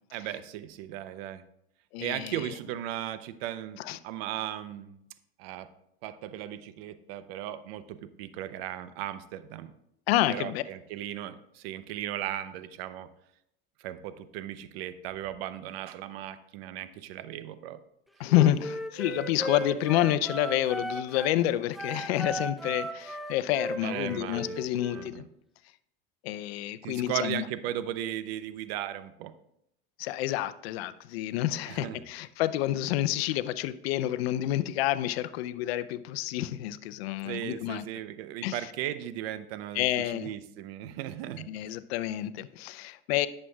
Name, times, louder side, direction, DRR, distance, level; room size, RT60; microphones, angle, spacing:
voice 1, 0.1-1.4 2.0-5.0 5.4-5.7 6.0-9.7 10.3-13.1 13.8-17.8 23.8-24.7 24.9-25.2 26.8-29.3 31.7-32.0 37.3-39.9 40.1-41.5, right 12 dB, 75° right, 12 dB, 0.7 m, -37 dB
voice 2, 1.9-2.5 3.8-4.0 10.1-10.6 18.2-25.2 26.2-27.4 30.0-37.8 38.4-38.7 39.7-40.3 41.5-43.3, left 14 dB, 80° left, 14 dB, 0.6 m, -29 dB
Wind instrument woodwind instrument, 18.3-21.4 21.7-25.1, right 1 dB, ahead, 0.6 m, -36 dB
11.0 x 7.4 x 2.3 m, 0.78 s
hypercardioid pair, 90°, 31 cm